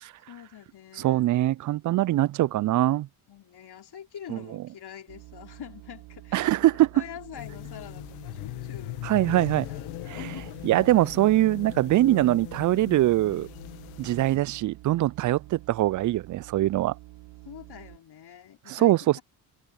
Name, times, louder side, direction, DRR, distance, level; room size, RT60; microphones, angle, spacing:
voice 1, 0.3-1.3 3.3-9.2 9.7-10.8 17.5-19.2, left 10 dB, 50° left, 3.8 m, -45 dB
voice 2, 1.0-3.1 4.3-4.4 6.3-6.9 9.0-9.7 10.1-10.2 10.6-13.5 14.0-16.9 18.7-19.2, right 15 dB, 40° right, 0.5 m, -23 dB
sound 1, 5.1-18.0, right 19 dB, 70° right, 4.7 m, -48 dB
sound 2, 7.3-14.4, left 25 dB, 75° left, 1.9 m, -39 dB
open air
hypercardioid pair, 55°, 49 cm